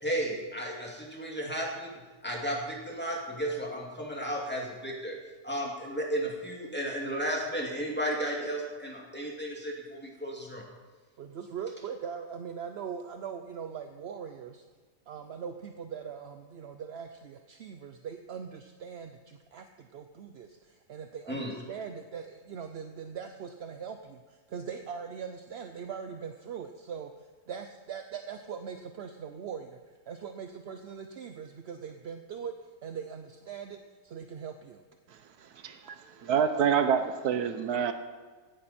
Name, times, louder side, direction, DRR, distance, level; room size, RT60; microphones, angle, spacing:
voice 1, 0.0-1.9 2.2-5.2 5.4-10.6 21.3-21.5, equal, 5° left, -2 dB, 2.3 m, -33 dB
voice 2, 11.2-14.6 15.1-32.5 32.8-34.8, right 7 dB, 60° right, 7 dB, 0.7 m, -41 dB
voice 3, 35.1-35.9 36.2-37.9, right 7 dB, 75° right, 9 dB, 1.3 m, -27 dB
16.5 x 11.5 x 4.3 m, 1.4 s
omnidirectional pair, 1.7 m